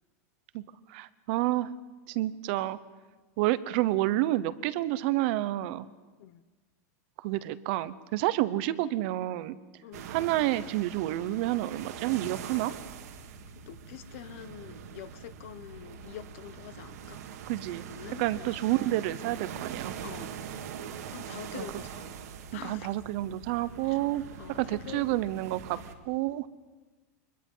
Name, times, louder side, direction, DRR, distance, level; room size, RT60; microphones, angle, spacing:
voice 1, 0.9-1.7 2.1-2.8 3.4-5.9 7.2-9.6 10.1-12.7 17.5-17.8 18.2-19.9 21.5-21.8 22.5-24.2 24.5-25.8 26.1-26.5, right 16 dB, 45° right, 15 dB, 0.8 m, -29 dB
North Sea, 9.9-25.9, right 7 dB, 80° right, 2.1 m, -43 dB
voice 2, 13.7-17.2 17.7-18.6 20.0-20.4 21.1-22.1 22.5-22.9 23.9-24.0 24.4-25.1, left 12 dB, 55° left, 14 dB, 1.1 m, -45 dB
25.0 x 21.5 x 5.6 m, 1.3 s
supercardioid pair, 170°, 8 cm